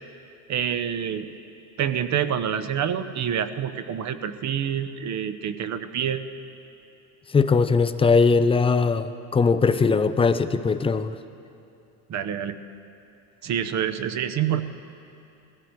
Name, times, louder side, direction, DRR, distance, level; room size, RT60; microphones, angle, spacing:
voice 1, 0.5-1.3 1.8-6.3 12.1-12.6 13.4-14.6, right 9 dB, 35° right, 11 dB, 0.8 m, -27 dB
voice 2, 7.3-11.2, left 4 dB, 15° left, 11 dB, 0.4 m, -20 dB
20.5 x 15.5 x 3.2 m, 2.7 s
hypercardioid pair, 85°, 46 cm